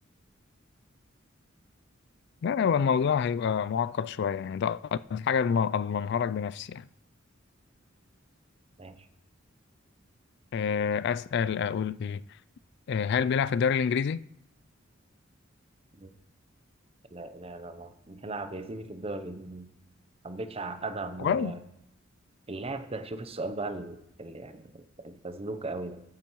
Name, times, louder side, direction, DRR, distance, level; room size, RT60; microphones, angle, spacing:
voice 1, 2.4-6.9 10.5-12.2 12.9-14.2 21.2-21.6, left 7 dB, 60° left, 0.3 m, -27 dB
voice 2, 17.1-19.7 20.2-21.6 22.5-26.0, right 2 dB, 30° right, 0.7 m, -38 dB
14.0 x 9.8 x 3.1 m
head